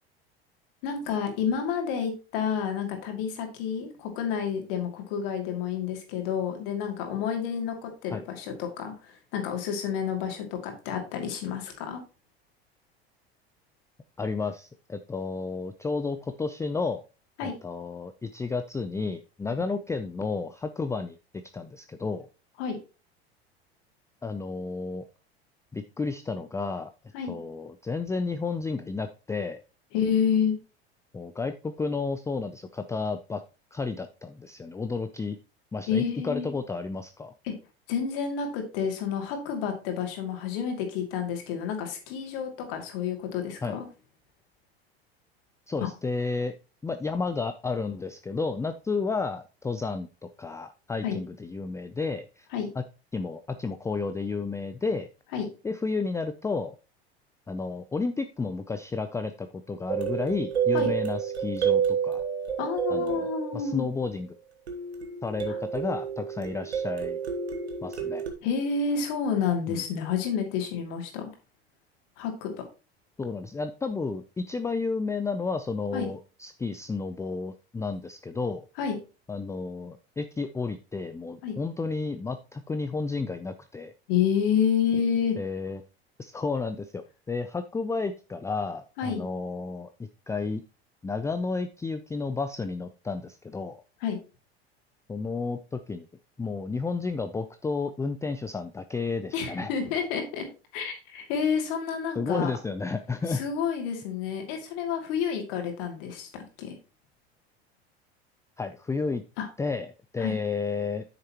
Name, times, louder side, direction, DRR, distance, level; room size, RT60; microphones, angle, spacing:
voice 1, 0.8-12.0 17.4-17.5 22.6-22.8 27.1-27.3 29.9-30.6 35.9-36.5 37.4-37.5 37.9-43.9 45.8-45.9 51.0-51.2 52.5-52.7 55.3-55.5 60.7-60.9 62.6-63.9 65.5-65.6 68.4-71.3 72.2-72.7 75.9-76.1 78.8-79.0 81.4-81.6 84.1-85.4 89.0-89.2 94.0-94.2 99.3-102.5 103.3-106.8 109.4-109.5 110.2-110.4, left 7 dB, 60° left, 4 dB, 2.6 m, -29 dB
voice 2, 14.2-17.0 17.4-21.2 21.5-22.3 24.2-25.0 25.7-26.9 27.3-29.6 31.1-33.4 33.7-35.4 35.7-37.3 43.6-43.8 45.7-46.5 46.8-52.5 52.8-52.9 53.1-55.1 55.6-56.7 57.5-62.2 62.9-63.3 63.5-64.3 65.2-67.2 67.8-68.2 69.7-69.8 73.2-78.7 79.3-83.9 85.4-85.8 86.2-90.6 91.0-93.8 95.1-96.1 96.4-99.7 102.2-103.4 108.6-109.2 109.6-109.9 110.1-111.0, left 4 dB, 10° left, 9 dB, 0.4 m, -32 dB
sound 1, 59.9-64.1 64.7-68.3, right 8 dB, 85° right, 1.4 m, -29 dB
8.9 x 6.6 x 3.0 m, 0.32 s
hypercardioid pair, 80°, 31 cm